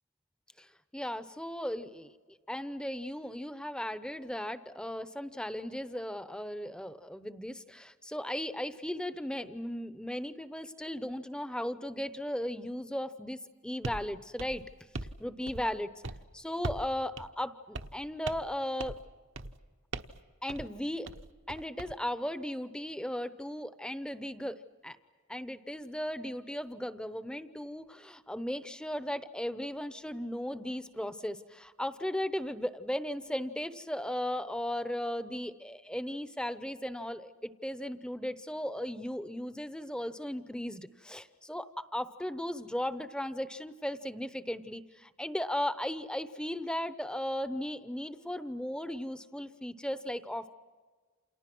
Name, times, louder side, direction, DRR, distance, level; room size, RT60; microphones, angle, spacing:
voice 1, 0.9-14.6 15.2-15.9 16.3-19.0 20.4-21.1 21.5-25.0 25.3-50.5, left 1 dB, 5° left, 12 dB, 0.8 m, -36 dB
sound 1, 13.8-14.1 14.4-15.2 15.5-15.8 16.0-16.2 16.6-16.9 17.2-17.3 17.7-18.0 18.3-18.5 18.8-19.1 19.4-19.6 19.9-20.2 20.5-20.7 21.1-21.9, right 2 dB, 60° right, 1.1 m, -40 dB
29.0 x 28.5 x 6.1 m, 1.5 s
head